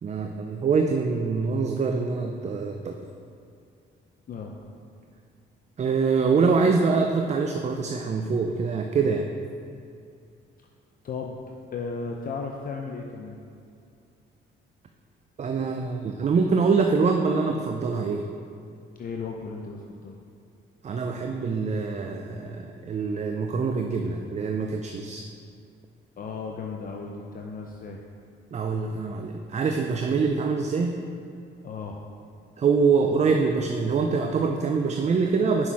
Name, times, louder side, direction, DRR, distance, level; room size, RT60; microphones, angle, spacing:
voice 1, 0.0-2.9 5.8-9.3 15.4-18.2 20.8-25.2 28.5-31.0 32.6-35.7, right 4 dB, 35° right, 4 dB, 0.4 m, -24 dB
voice 2, 4.3-4.6 6.3-6.4 11.0-11.4 11.7-13.4 19.0-20.2 26.2-28.0 31.6-32.0, left 4 dB, 45° left, 1 dB, 0.6 m, -35 dB
6.1 x 5.7 x 4.7 m, 2.4 s
cardioid pair, 90°, 20 cm